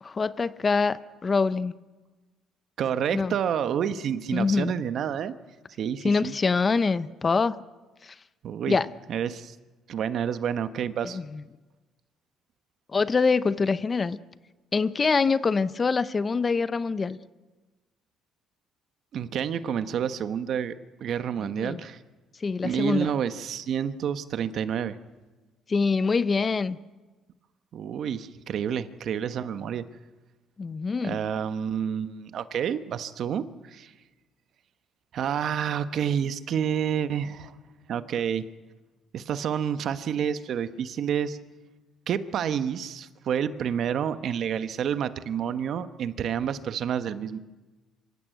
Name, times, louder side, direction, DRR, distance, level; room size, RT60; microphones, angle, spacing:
voice 1, 0.0-1.7 3.1-3.3 4.3-4.7 6.0-7.6 8.0-8.1 8.7-8.9 11.1-11.4 12.9-14.2 14.7-17.2 21.4-21.8 22.4-23.1 25.7-26.8 30.6-31.2, left 4 dB, 30° left, 15 dB, 0.7 m, -25 dB
voice 2, 2.8-5.3 5.8-6.3 8.4-8.8 9.1-9.5 9.9-11.2 19.1-20.7 21.0-22.0 22.6-25.0 27.7-29.8 31.0-33.9 35.1-37.5 37.9-38.4 39.1-41.4 42.1-47.4, right 8 dB, 55° right, 12 dB, 1.1 m, -29 dB
25.5 x 15.0 x 9.3 m, 1.2 s
cardioid pair, 115°, 0 cm